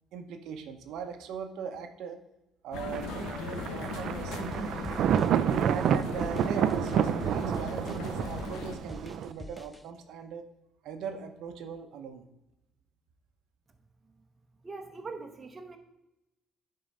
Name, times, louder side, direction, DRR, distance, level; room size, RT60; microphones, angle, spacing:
voice 1, 0.1-2.2 2.6-4.8 5.4-10.4 10.8-12.2, right 6 dB, 75° right, 6 dB, 0.8 m, -39 dB
sound 1, 2.7-8.8, left 5 dB, 90° left, 0.8 m, -39 dB
Thunder, 2.9-9.3, right 9 dB, 60° right, 0.4 m, -29 dB
sound 2, 4.5-9.8, left 1 dB, 5° left, 0.4 m, -45 dB
voice 2, 14.6-15.8, right 4 dB, 25° right, 5 dB, 1.0 m, -42 dB
10.0 x 3.9 x 5.3 m, 0.91 s
cardioid pair, 125°, 0 cm